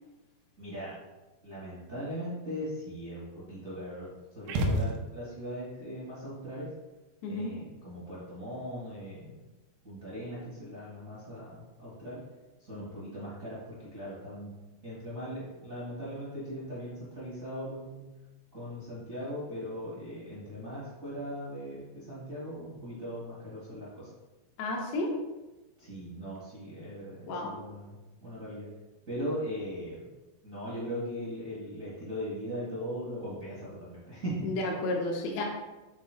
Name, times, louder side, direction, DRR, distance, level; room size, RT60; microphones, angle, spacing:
voice 1, 0.6-0.9 1.4-6.7 7.2-9.4 9.8-12.2 12.6-14.5 14.8-18.0 18.5-24.1 25.8-28.7 29.1-30.1 30.4-34.5, equal, 70° right, -9 dB, 0.7 m, -39 dB
sound 1, 4.5-5.5, equal, 90° right, 2.3 m, -30 dB
voice 2, 7.2-7.5 24.6-25.1 27.2-27.6 34.4-35.4, left 2 dB, 70° left, -1 dB, 2.8 m, -32 dB
8.3 x 8.0 x 2.3 m, 1.1 s
omnidirectional pair, 5.8 m